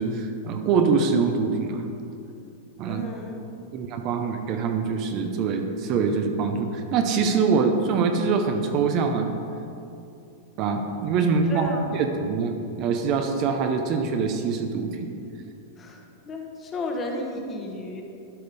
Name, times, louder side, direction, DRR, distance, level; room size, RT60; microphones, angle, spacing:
voice 1, 0.0-1.8 2.8-3.0 3.7-9.3 10.6-12.5 12.8-15.1, right 5 dB, 35° right, 5 dB, 0.7 m, -24 dB
voice 2, 2.8-3.4 11.5-11.8 15.8-18.0, left 1 dB, 20° left, 1 dB, 1.1 m, -33 dB
12.0 x 5.2 x 5.3 m, 2.7 s
supercardioid pair, 160°, 0 cm